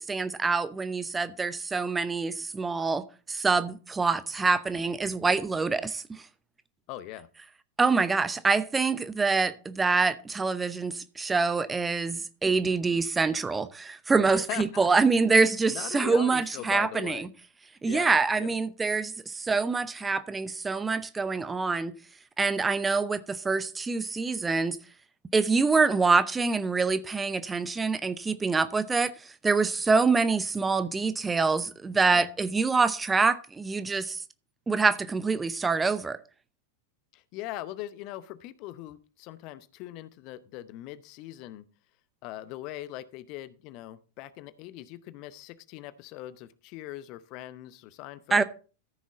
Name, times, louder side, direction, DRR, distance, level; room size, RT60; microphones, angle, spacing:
voice 1, 0.0-6.2 7.8-17.3 17.8-21.9 22.4-24.8 25.3-34.2 34.7-36.2 48.3-48.4, right 4 dB, 15° right, 0.7 m, -26 dB
voice 2, 6.9-7.3 14.3-14.9 15.7-17.3 17.8-18.1 18.4-18.5 32.1-32.3 37.1-41.6 42.2-48.4, left 14 dB, 40° left, 0.8 m, -40 dB
14.0 x 6.3 x 4.1 m
figure-of-eight pair, 90°, 0 cm